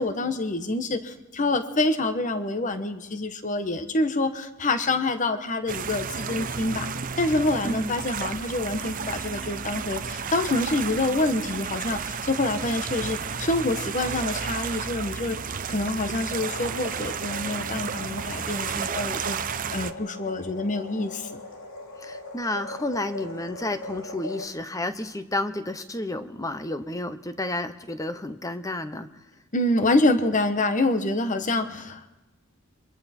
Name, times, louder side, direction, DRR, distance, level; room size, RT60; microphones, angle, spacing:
voice 1, 0.0-6.9 7.2-15.4 15.7-19.4 19.7-21.4 29.5-32.1, left 2 dB, 35° left, 9 dB, 1.2 m, -26 dB
sound 1, 5.7-19.9, right 6 dB, 40° right, 0.7 m, -32 dB
sound 2, 16.3-24.5, left 2 dB, 65° left, 2.5 m, -40 dB
voice 2, 22.0-29.1, left 1 dB, 15° left, 11 dB, 0.9 m, -31 dB
26.5 x 23.0 x 4.4 m, 1.0 s
head